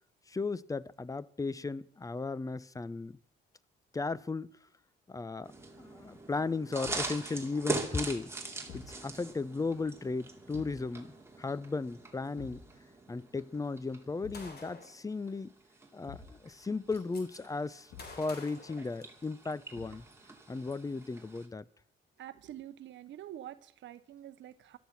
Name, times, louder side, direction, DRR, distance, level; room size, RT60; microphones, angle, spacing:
voice 1, 0.3-3.2 3.9-4.5 5.1-8.3 8.7-12.6 13.1-15.5 15.9-17.9 18.2-20.0 20.5-21.7, left 3 dB, 15° left, 0.6 m, -36 dB
sound 1, 5.4-21.5, right 3 dB, 15° right, 2.6 m, -43 dB
Thump thud, 6.8-7.2 8.7-9.0 10.5-10.9 12.4-12.7 14.2-14.5 16.0-16.4 17.9-18.2 19.7-20.1, left 6 dB, 85° left, 3.2 m, -49 dB
Gunshot gunfire, 14.3-15.0 16.1-16.2 16.5-17.2 18.0-19.5, left 3 dB, 55° left, 3.3 m, -49 dB
voice 2, 22.2-24.8, right 12 dB, 70° right, 0.8 m, -47 dB
17.0 x 12.5 x 5.9 m
cardioid pair, 90°, 20 cm